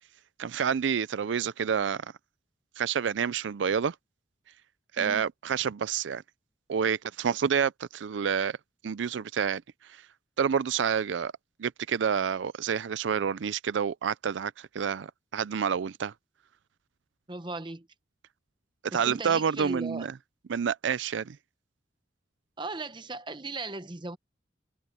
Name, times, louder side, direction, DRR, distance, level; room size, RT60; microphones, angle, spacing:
voice 1, 0.4-2.1 2.8-3.9 4.9-6.2 6.7-8.6 8.8-9.6 9.9-10.0 10.4-11.3 11.6-16.1 18.8-20.1 20.5-21.4, right 7 dB, 85° right, 0.4 m, -28 dB
voice 2, 17.3-17.9 18.9-20.1 22.6-24.2, right 2 dB, 25° right, 0.9 m, -37 dB
head